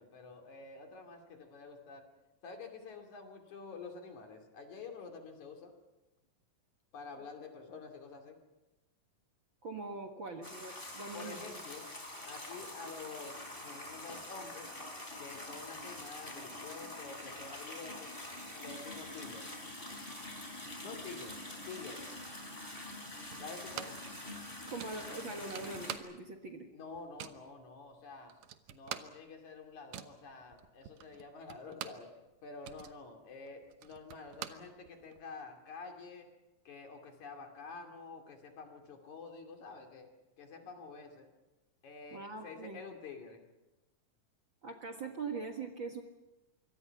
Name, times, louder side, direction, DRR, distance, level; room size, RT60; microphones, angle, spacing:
voice 1, 0.0-2.1 2.4-5.8 6.9-8.4 11.1-11.9 12.3-14.7 15.2-18.2 18.6-19.5 20.8-21.4 21.7-22.1 23.4-24.0 26.7-28.3 28.7-36.3 36.7-41.3 41.8-43.4, left 4 dB, 65° left, 4 dB, 3.9 m, -48 dB
voice 2, 9.6-11.4 24.7-26.7 42.1-42.8 44.6-46.0, right 3 dB, 45° right, 3 dB, 1.9 m, -42 dB
sound 1, 10.4-26.0, left 1 dB, 15° left, 3.9 m, -45 dB
sound 2, 23.3-24.1 24.4-24.5 24.8-26.5 26.7-27.5 28.0-28.1 28.3-32.1 32.4-35.2, right 11 dB, 80° right, 2.7 m, -46 dB
25.5 x 24.0 x 5.9 m, 1.0 s
omnidirectional pair, 3.8 m